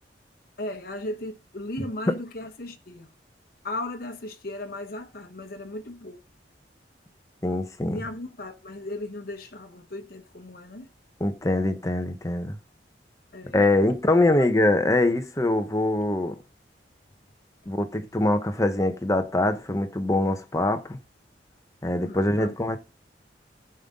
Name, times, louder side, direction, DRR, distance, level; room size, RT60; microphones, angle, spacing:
voice 1, 0.6-3.1 3.6-6.2 7.9-10.9 13.3-13.6 14.1-14.5 22.0-22.5, left 1 dB, 55° left, 1.1 m, -36 dB
voice 2, 7.4-8.0 11.2-12.6 13.5-16.4 17.7-21.0 21.8-22.8, left 2 dB, 20° left, 1.0 m, -23 dB
14.5 x 5.6 x 3.7 m
head